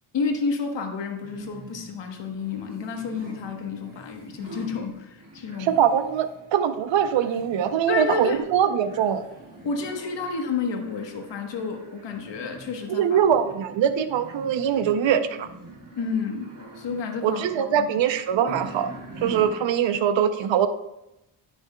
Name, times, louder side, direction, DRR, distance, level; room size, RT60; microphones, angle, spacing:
voice 1, 0.1-5.8 7.9-8.4 9.6-13.2 15.9-18.0 18.3-18.5, left 5 dB, 60° left, 4 dB, 1.3 m, -30 dB
sound 1, 1.2-20.0, right 2 dB, 45° right, 2.5 m, -45 dB
voice 2, 5.6-9.2 12.9-15.5 17.2-20.7, right 8 dB, 70° right, 10 dB, 0.7 m, -23 dB
10.5 x 6.1 x 2.2 m, 0.88 s
cardioid pair, 85°, 47 cm